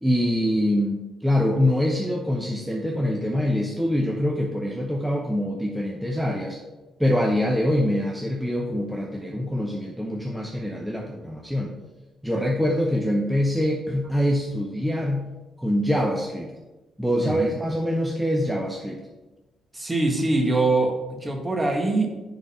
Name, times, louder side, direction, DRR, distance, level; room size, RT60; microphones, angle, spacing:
voice 1, 0.0-6.6 7.0-11.7 12.2-15.3 15.6-16.5 17.0-19.0, equal, ahead, 0 dB, 0.8 m, -24 dB
voice 2, 19.7-22.1, right 2 dB, 20° right, 3 dB, 1.3 m, -23 dB
10.0 x 3.9 x 4.2 m, 1.2 s
cardioid pair, 90°, 0 cm